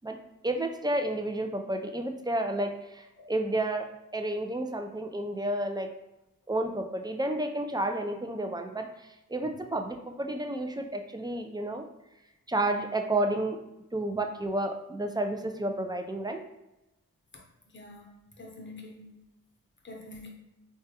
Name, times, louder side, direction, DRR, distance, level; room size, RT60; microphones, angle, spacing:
voice 1, 0.4-3.9 4.1-5.9 6.5-11.8 12.5-13.6 13.9-16.4, right 1 dB, 15° right, 4 dB, 0.3 m, -31 dB
voice 2, 17.7-18.1 18.4-19.2 19.8-20.3, left 2 dB, 35° left, 0 dB, 0.8 m, -46 dB
3.2 x 2.3 x 2.7 m, 0.90 s
cardioid pair, 55°, 32 cm